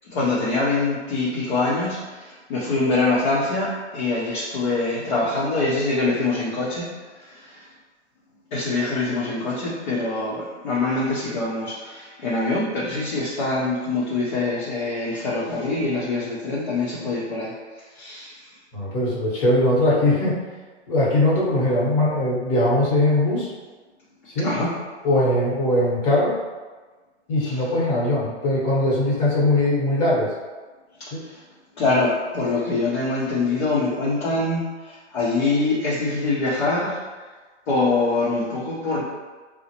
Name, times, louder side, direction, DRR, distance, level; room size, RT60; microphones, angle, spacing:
voice 1, 0.0-6.9 7.1-7.7 8.5-17.5 17.9-18.5 24.4-24.7 27.4-27.7 31.0-31.4 31.8-37.0 37.7-39.0, left 3 dB, 45° left, -7 dB, 0.7 m, -24 dB
voice 2, 18.7-20.3 20.9-23.5 24.3-24.5 25.0-26.3 27.3-30.3 31.1-31.2, left 1 dB, 25° left, -6 dB, 1.0 m, -20 dB
3.8 x 2.1 x 2.9 m, 1.3 s
hypercardioid pair, 150°, 35 cm